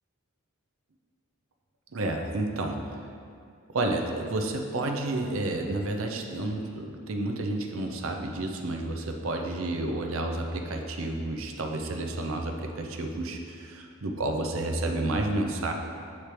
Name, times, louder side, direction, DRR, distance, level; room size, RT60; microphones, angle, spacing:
voice 1, 1.9-3.1 3.7-15.7, right 2 dB, 70° right, 3 dB, 0.6 m, -30 dB
8.4 x 3.3 x 4.4 m, 2.3 s
head